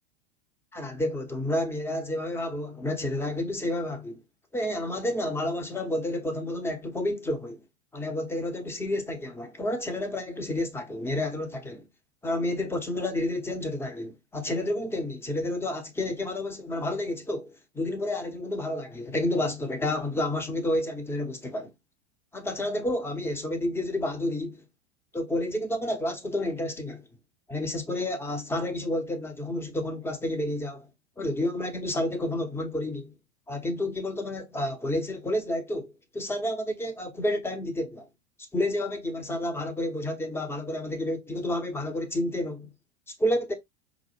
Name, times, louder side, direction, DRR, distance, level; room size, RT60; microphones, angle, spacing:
voice 1, 0.7-4.2 4.5-7.6 7.9-11.8 12.2-21.7 22.3-24.6 25.1-27.0 27.5-30.9 31.2-33.1 33.5-38.1 38.5-42.7 43.2-43.5, left 1 dB, 5° left, 0.7 m, -30 dB
4.9 x 2.0 x 3.1 m
figure-of-eight pair, 95°, 33 cm